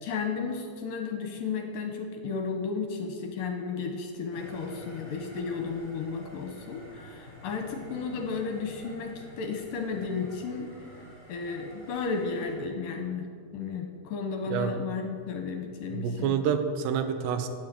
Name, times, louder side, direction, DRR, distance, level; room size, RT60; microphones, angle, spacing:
voice 1, 0.0-10.7 11.3-13.2 13.5-16.4, left 5 dB, 70° left, 3 dB, 2.4 m, -33 dB
sound 1, 4.3-12.5, equal, 55° right, 5.2 m, -48 dB
voice 2, 15.9-17.5, right 7 dB, 85° right, 8 dB, 3.0 m, -28 dB
15.0 x 6.7 x 9.3 m, 2.1 s
omnidirectional pair, 4.8 m